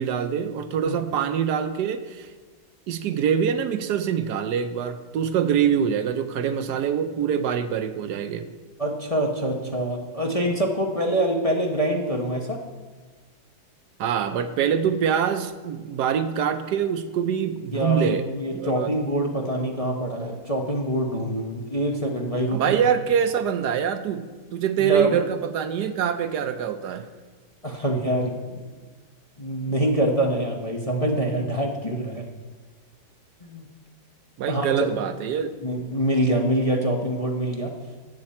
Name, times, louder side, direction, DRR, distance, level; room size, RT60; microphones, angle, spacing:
voice 1, 0.0-2.3 2.9-8.5 14.0-18.3 18.5-18.9 22.5-27.1 34.4-35.5, right 8 dB, 75° right, 10 dB, 1.2 m, -24 dB
voice 2, 8.8-12.6 17.7-22.6 24.8-25.1 27.6-28.6 29.4-32.3 33.4-33.6 34.4-34.7 35.6-37.7, right 1 dB, 25° left, 0 dB, 0.8 m, -25 dB
13.0 x 8.8 x 4.3 m, 1.3 s
omnidirectional pair, 1.9 m